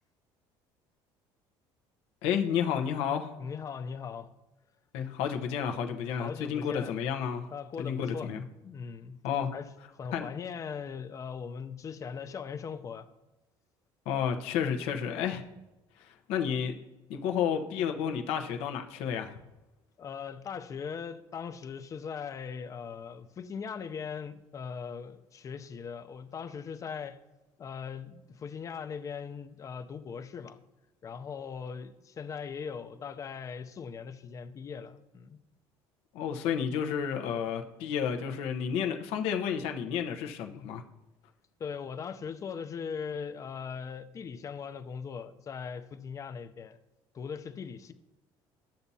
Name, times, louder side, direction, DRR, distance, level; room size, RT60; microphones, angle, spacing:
voice 1, 2.2-3.3 4.9-7.5 7.8-8.4 9.2-9.5 10.1-10.3 14.1-15.4 16.0-16.7 17.1-19.4 36.1-40.8, left 8 dB, 80° left, 0.9 m, -31 dB
voice 2, 3.4-4.3 6.2-7.0 7.5-9.2 9.5-13.1 20.0-27.2 27.6-30.6 31.0-35.4 41.6-46.8 47.1-47.9, left 6 dB, 35° left, 0.5 m, -40 dB
11.5 x 7.1 x 2.8 m
cardioid pair, 130°, 10 cm